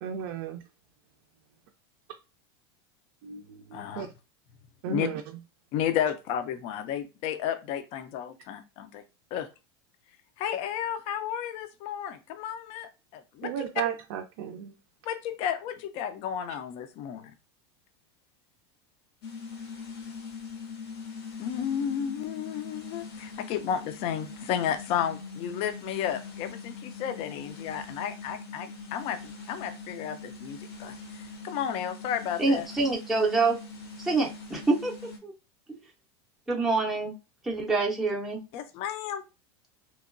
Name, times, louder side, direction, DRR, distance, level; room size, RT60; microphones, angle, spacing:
voice 1, 0.0-0.6 3.2-4.1 4.8-5.2 13.4-14.8, right 9 dB, 70° right, 3 dB, 0.4 m, -34 dB
voice 2, 3.7-4.1 4.9-5.1 5.7-9.0 9.3-9.5 10.4-13.5 15.0-17.3 21.4-32.7 38.5-39.2, left 9 dB, 45° left, 9 dB, 0.4 m, -32 dB
sound 1, 19.2-35.2, left 4 dB, 85° left, 1.0 m, -42 dB
voice 3, 32.4-33.6 34.0-34.9 35.2-35.3 35.7-35.8 36.5-37.1 37.4-38.4, right 3 dB, ahead, -3 dB, 0.5 m, -26 dB
2.8 x 2.1 x 2.5 m, 0.29 s
supercardioid pair, 130°, 13 cm